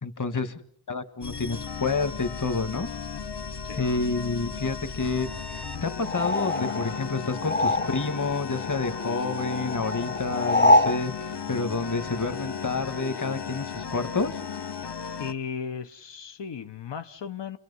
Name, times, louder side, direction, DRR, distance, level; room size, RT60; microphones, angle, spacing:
voice 1, 0.0-0.5 0.9-2.9 3.8-5.3 5.5-14.4, left 3 dB, 45° left, 1.8 m, -29 dB
sound 1, 1.2-15.3, left 6 dB, 70° left, 1.5 m, -35 dB
sound 2, 6.0-8.3 8.5-11.0, left 1 dB, 25° left, 0.9 m, -25 dB
voice 2, 15.2-17.6, left 7 dB, 90° left, 1.1 m, -36 dB
29.5 x 23.0 x 5.6 m
wide cardioid pair, 75°, 42 cm